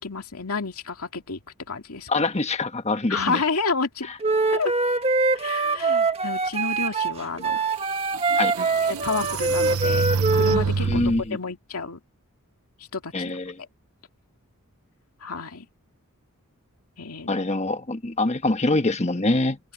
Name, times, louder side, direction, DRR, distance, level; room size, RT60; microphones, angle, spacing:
voice 1, 0.0-1.4 1.7-2.1 3.1-4.1 4.5-4.7 5.3-7.6 8.8-10.1 10.3-11.0 11.3-12.0 12.9-13.3 15.2-15.7 17.0-17.3, left 4 dB, 80° left, 2.4 m, -30 dB
voice 2, 2.1-3.4 8.4-8.5 10.8-11.4 13.1-13.5 17.3-19.6, left 2 dB, 30° left, 1.4 m, -24 dB
Wind instrument woodwind instrument, 4.2-10.7, right 3 dB, 25° right, 1.7 m, -23 dB
sound 1, 7.5-7.6 8.1-11.3, right 5 dB, 80° right, 0.8 m, -27 dB
open air
head